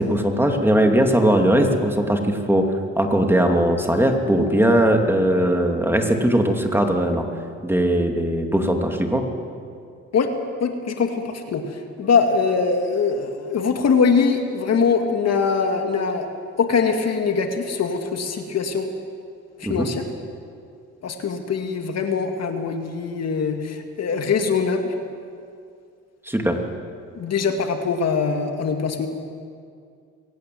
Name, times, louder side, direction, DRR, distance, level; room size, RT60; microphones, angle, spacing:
voice 1, 0.0-2.7 3.0-7.3 7.6-9.2 19.6-19.9 26.3-26.6, right 1 dB, 5° right, 3 dB, 2.5 m, -19 dB
voice 2, 10.6-16.3 16.6-18.9 19.6-20.0 21.0-24.9 27.2-29.1, left 5 dB, 55° left, 5 dB, 2.2 m, -22 dB
22.5 x 17.5 x 7.8 m, 2.3 s
cardioid pair, 90°, 30 cm